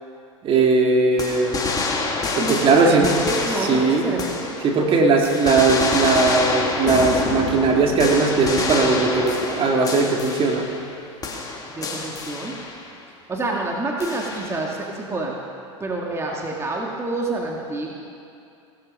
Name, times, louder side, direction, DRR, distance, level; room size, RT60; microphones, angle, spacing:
voice 1, 0.4-1.6 2.3-3.1 3.7-4.1 4.6-10.7, right 4 dB, 35° right, 1 dB, 2.2 m, -19 dB
sound 1, 1.2-4.9 5.2-10.9 11.2-12.9 14.0-14.7, left 3 dB, 25° left, 2.3 m, -27 dB
voice 2, 2.4-5.3 11.7-12.6 13.3-15.4 15.8-17.9, right 2 dB, 15° right, -1 dB, 1.9 m, -28 dB
18.0 x 13.0 x 5.3 m, 2.6 s
hypercardioid pair, 95°, 16 cm